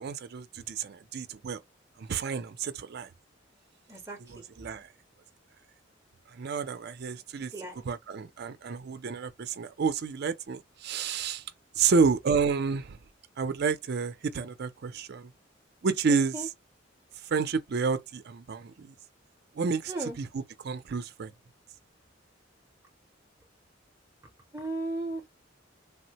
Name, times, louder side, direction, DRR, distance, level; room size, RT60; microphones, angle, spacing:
voice 1, 0.0-1.6 2.0-3.1 4.3-4.9 6.3-11.4 11.8-13.0 13.4-15.3 15.8-16.5 17.2-18.9 19.6-21.3, right 5 dB, 55° right, 0.4 m, -30 dB
voice 2, 3.9-4.5 7.5-7.8 16.1-16.5 19.9-20.2 24.5-25.3, right 2 dB, 15° right, 0.6 m, -36 dB
3.3 x 2.1 x 2.8 m
head